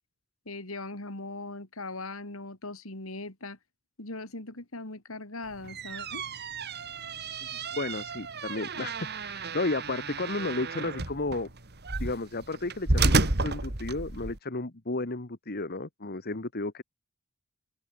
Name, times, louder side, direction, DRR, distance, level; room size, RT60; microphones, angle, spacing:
voice 1, 0.5-3.6 4.0-6.2, left 2 dB, 85° left, 3.6 m, -39 dB
sound 1, 5.5-14.4, right 3 dB, 50° right, 2.5 m, -31 dB
voice 2, 7.4-11.5 12.0-16.8, left 2 dB, 50° left, 1.7 m, -33 dB
open air
head